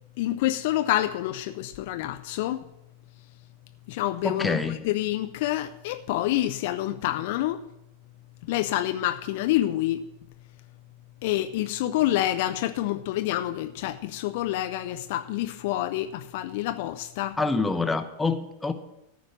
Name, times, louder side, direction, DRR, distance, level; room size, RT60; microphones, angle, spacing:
voice 1, 0.2-2.6 3.9-7.6 8.5-10.0 11.2-17.4, left 14 dB, 50° left, 0.5 m, -27 dB
voice 2, 4.2-4.8 17.4-18.7, left 3 dB, 10° left, 0.9 m, -26 dB
14.0 x 5.2 x 8.1 m
figure-of-eight pair, 90°, 0 cm